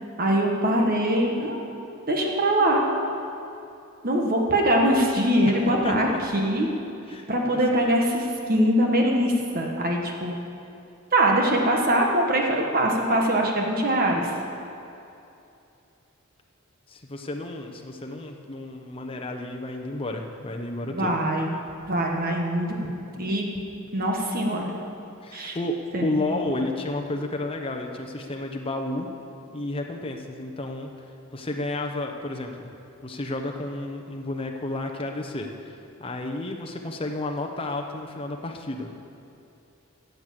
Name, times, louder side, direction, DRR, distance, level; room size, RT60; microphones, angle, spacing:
voice 1, 0.2-1.6 2.1-2.8 4.0-6.1 6.3-6.7 7.3-10.4 11.1-14.3 20.9-21.5 21.9-22.9 23.2-23.5 23.9-24.7 25.3-25.5 25.9-26.3, right 1 dB, 45° right, 0 dB, 1.4 m, -23 dB
voice 2, 5.8-6.2 7.1-7.6 16.9-21.2 25.2-29.1 29.5-30.9 31.3-32.7 33.0-38.9, left 2 dB, 25° left, 3 dB, 0.8 m, -32 dB
13.0 x 8.0 x 7.5 m, 2.7 s
head